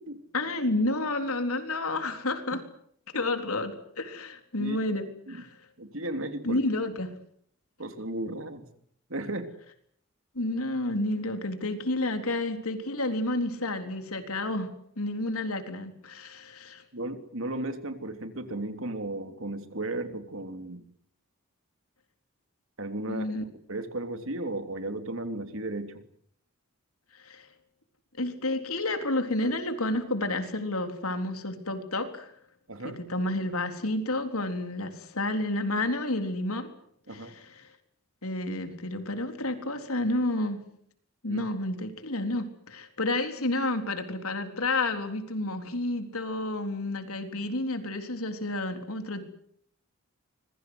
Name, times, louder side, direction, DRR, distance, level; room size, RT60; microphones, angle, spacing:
voice 1, 0.3-2.6 3.1-5.5 6.4-7.1 10.3-14.7 15.0-16.8 23.1-23.4 27.2-27.5 28.2-32.3 32.8-36.7 37.1-37.7 38.2-40.6 41.2-49.2, left 2 dB, 75° left, 7 dB, 3.9 m, -30 dB
voice 2, 5.8-6.6 7.8-8.6 9.1-9.5 16.9-20.8 22.8-23.3 23.7-26.0 32.7-33.0 37.1-37.3 41.3-41.4, right 2 dB, 65° right, 8 dB, 3.3 m, -35 dB
25.5 x 22.0 x 8.1 m, 0.66 s
head